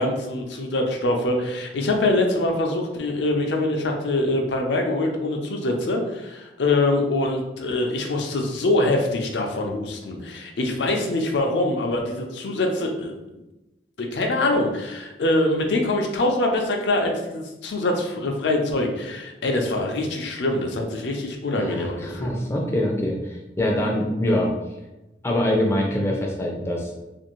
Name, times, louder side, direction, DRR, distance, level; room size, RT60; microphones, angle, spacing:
voice 1, 0.0-13.1 14.0-22.3, left 2 dB, 80° left, 2 dB, 0.5 m, -24 dB
voice 2, 21.5-24.5 25.2-26.9, left 1 dB, 15° left, -1 dB, 0.3 m, -24 dB
2.5 x 2.5 x 2.9 m, 0.99 s
head